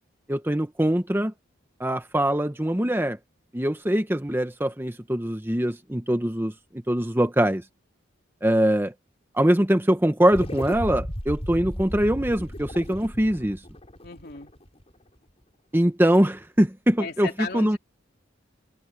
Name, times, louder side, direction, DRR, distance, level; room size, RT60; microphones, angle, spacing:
voice 1, 0.3-1.3 1.8-3.2 3.5-6.5 6.9-7.6 8.4-8.9 9.3-13.6 15.7-17.8, right 1 dB, 10° right, 1.0 m, -23 dB
sound 1, 10.3-15.0, equal, 30° left, 6.6 m, -35 dB
voice 2, 14.0-14.5 17.0-17.8, left 4 dB, 55° left, 3.1 m, -35 dB
head